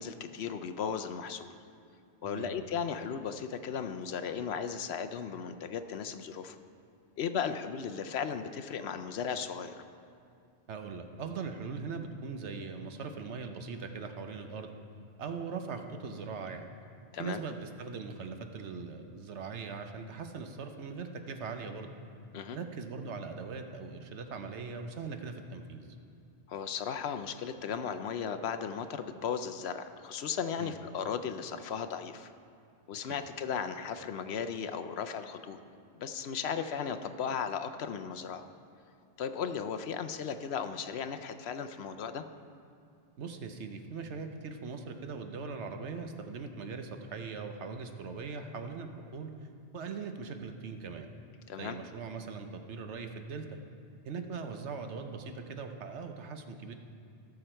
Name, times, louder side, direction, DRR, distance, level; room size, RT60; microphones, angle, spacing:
voice 1, 0.0-1.6 2.2-6.6 7.2-9.8 17.1-17.4 22.3-22.6 26.5-32.3 32.9-35.6 35.9-38.4 39.2-42.2 51.5-51.8, left 7 dB, 70° left, 9 dB, 0.8 m, -36 dB
voice 2, 2.2-2.6 10.7-14.7 15.2-16.7 17.2-21.9 22.5-25.9 30.6-30.7 33.1-33.2 43.2-49.5 49.7-51.1 51.6-53.6 54.0-56.7, right 5 dB, 75° right, 6 dB, 1.1 m, -40 dB
17.0 x 6.8 x 4.4 m, 2.4 s
omnidirectional pair, 1.2 m